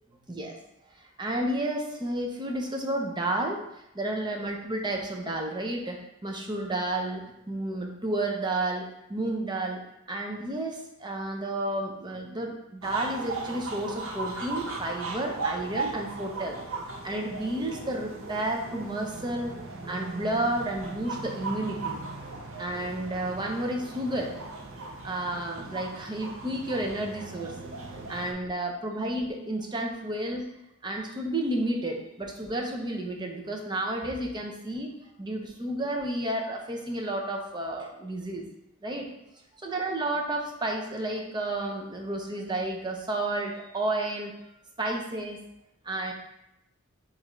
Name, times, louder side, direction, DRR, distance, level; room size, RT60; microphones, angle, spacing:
voice 1, 1.2-3.6 3.9-7.2 7.5-9.8 10.1-16.6 17.0-19.5 19.8-22.1 22.6-24.3 25.0-27.5 28.1-30.5 30.8-38.4 38.8-39.1 39.6-44.3 44.8-45.4 45.8-46.1, right 1 dB, 20° right, 1 dB, 0.6 m, -31 dB
sound 1, 12.8-28.3, right 3 dB, 70° right, 0.7 m, -37 dB
6.5 x 2.6 x 3.1 m, 0.82 s
head